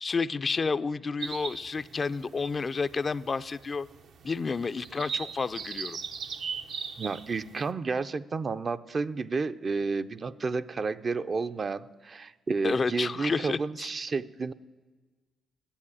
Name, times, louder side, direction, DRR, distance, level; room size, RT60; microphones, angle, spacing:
voice 1, 0.0-3.9 4.2-6.0 12.6-13.9, left 4 dB, 40° left, 13 dB, 0.4 m, -30 dB
sound 1, 1.2-7.7, right 6 dB, 75° right, 0.8 m, -39 dB
voice 2, 7.0-14.5, right 4 dB, 45° right, 11 dB, 0.5 m, -31 dB
9.9 x 8.4 x 9.6 m, 1.3 s
supercardioid pair, 65°, 0 cm